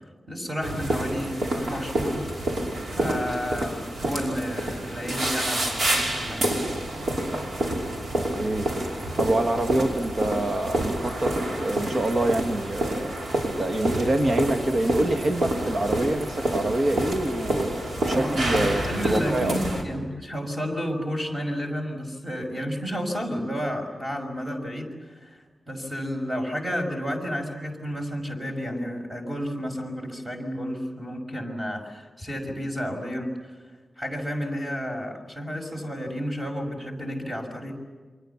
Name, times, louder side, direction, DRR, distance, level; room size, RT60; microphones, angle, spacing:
voice 1, 0.3-2.2 2.9-6.5 18.1-18.3 18.6-33.4 34.0-37.7, equal, 15° right, 3 dB, 6.1 m, -31 dB
sound 1, 0.6-19.8, right 1 dB, 80° right, 5.2 m, -28 dB
voice 2, 8.1-8.7 9.2-13.1 13.6-19.5, right 1 dB, 45° right, 5 dB, 1.5 m, -26 dB
29.0 x 25.0 x 7.2 m, 1.4 s
wide cardioid pair, 135°, 0 cm